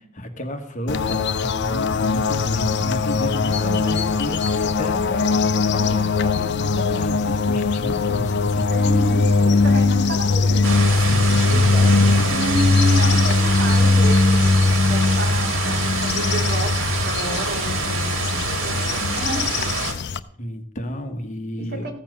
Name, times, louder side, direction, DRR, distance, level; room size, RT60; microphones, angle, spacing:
voice 1, 0.2-8.7 11.0-12.3 20.4-21.9, equal, 40° left, 6 dB, 1.3 m, -31 dB
sound 1, 0.9-20.2, left 3 dB, 55° left, 0.6 m, -20 dB
sound 2, 3.2-15.9, right 1 dB, 15° right, 3.3 m, -45 dB
voice 2, 8.7-10.7 11.5-14.4 14.8-19.7 21.6-21.9, equal, 50° right, 1 dB, 2.7 m, -30 dB
sound 3, 10.6-19.9, right 4 dB, 85° right, 2.6 m, -26 dB
14.5 x 7.3 x 6.0 m, 0.64 s
head